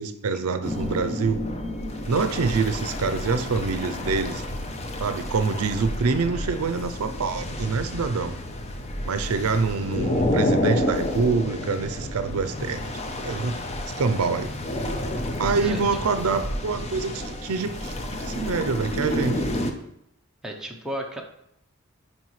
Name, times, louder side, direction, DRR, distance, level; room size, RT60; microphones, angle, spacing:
voice 1, 0.0-1.4 2.1-4.4 5.0-8.4 9.0-12.9 13.2-13.6 14.0-14.5 15.4-19.4, right 4 dB, 75° right, 10 dB, 0.5 m, -26 dB
sound 1, 0.6-19.7, left 1 dB, 30° left, 0.7 m, -30 dB
voice 2, 20.4-21.2, equal, 5° right, 0 dB, 0.8 m, -33 dB
9.5 x 4.9 x 3.2 m, 0.76 s
head